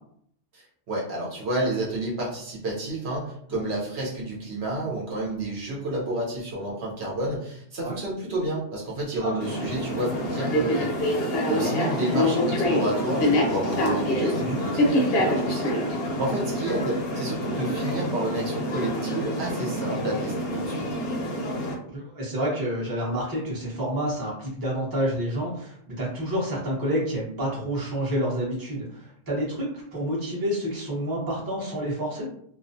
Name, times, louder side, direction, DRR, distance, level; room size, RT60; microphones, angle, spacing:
voice 1, 0.5-15.7 16.2-20.9, right 1 dB, 65° right, -4 dB, 0.9 m, -30 dB
sound 1, 9.4-21.7, left 1 dB, 65° left, 0.7 m, -26 dB
voice 2, 21.9-32.3, equal, 20° right, -5 dB, 0.8 m, -29 dB
2.4 x 2.1 x 2.5 m, 0.66 s
omnidirectional pair, 1.2 m